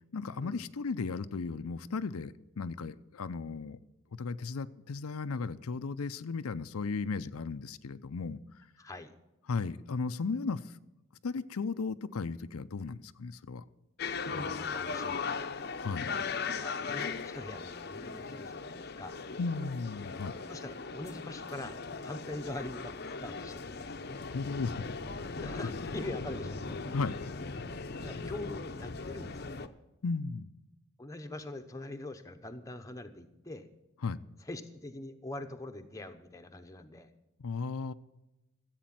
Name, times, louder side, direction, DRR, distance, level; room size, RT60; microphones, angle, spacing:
voice 1, 0.0-3.8 4.2-8.4 9.5-10.8 11.2-13.6 15.8-16.1 19.4-20.4 24.2-24.9 26.9-27.2 30.0-30.5 34.0-34.2 37.4-37.9, left 4 dB, 85° left, 11 dB, 0.5 m, -35 dB
voice 2, 8.8-9.1 14.1-15.5 16.5-19.2 20.5-24.1 25.4-26.6 27.7-29.7 31.0-33.7 34.4-37.1, left 2 dB, 15° left, 6 dB, 0.9 m, -43 dB
sound 1, 14.0-29.7, left 4 dB, 45° left, 0.7 m, -38 dB
14.5 x 8.2 x 7.6 m, 0.97 s
head